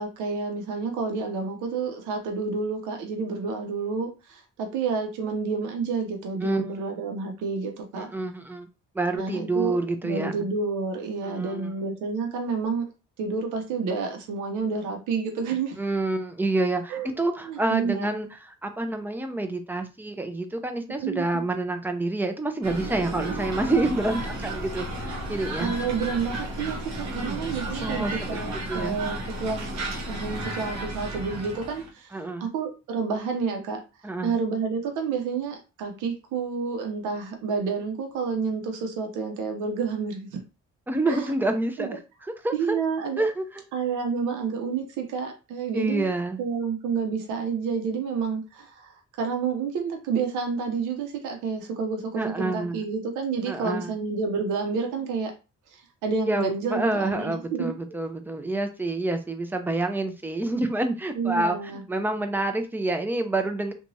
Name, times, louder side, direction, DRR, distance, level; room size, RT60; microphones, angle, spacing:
voice 1, 0.0-8.1 9.1-9.8 10.0-12.9 13.2-15.8 16.9-17.1 17.4-18.1 21.0-21.4 25.6-29.7 30.1-33.8 34.2-40.4 41.1-41.3 41.8-41.9 42.5-43.2 43.7-46.1 46.4-55.3 56.0-57.8 61.2-61.8, right 5 dB, 85° right, 0.7 m, -29 dB
voice 2, 7.9-8.7 8.9-10.5 11.2-11.7 15.8-25.8 27.8-28.4 28.7-29.0 32.1-32.5 34.0-34.4 40.9-42.0 42.4-42.8 43.2-43.6 45.7-46.4 52.1-52.8 53.5-53.9 56.3-61.6 61.9-63.7, right 2 dB, 5° right, 0.4 m, -28 dB
sound 1, 22.6-31.9, right 1 dB, 60° right, 1.0 m, -33 dB
2.9 x 2.3 x 2.6 m
cardioid pair, 90°, 30 cm